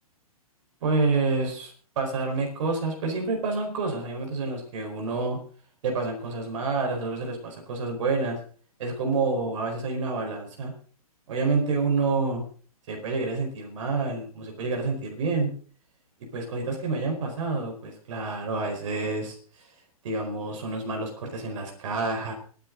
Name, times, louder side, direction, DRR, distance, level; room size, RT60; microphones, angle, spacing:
voice 1, 0.8-5.4 5.8-8.4 8.8-10.7 11.3-12.4 12.9-15.5 16.3-19.4 20.0-22.3, right 3 dB, 55° right, 2 dB, 4.6 m, -28 dB
24.0 x 10.5 x 3.9 m, 0.43 s
figure-of-eight pair, 120°, 19 cm